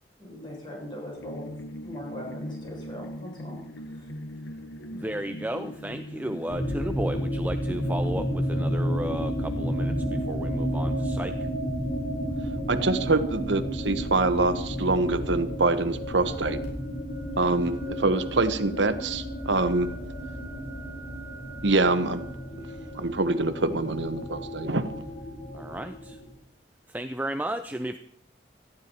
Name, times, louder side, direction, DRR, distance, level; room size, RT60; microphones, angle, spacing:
voice 1, 0.2-3.6 3.9-4.1, left 1 dB, 25° left, -3 dB, 7.5 m, -40 dB
sound 1, 1.2-10.3, equal, 90° left, 1.2 m, -40 dB
voice 2, 4.9-11.5 25.5-26.2 26.9-28.0, right 1 dB, 10° right, 8 dB, 0.5 m, -34 dB
sound 2, 6.5-26.3, equal, 65° left, 5.9 m, -31 dB
voice 3, 12.7-16.6 17.4-19.9 21.6-22.3 22.6-22.7 22.9-25.1, right 3 dB, 80° right, 10 dB, 1.2 m, -25 dB
19.0 x 14.0 x 4.5 m, 0.67 s
head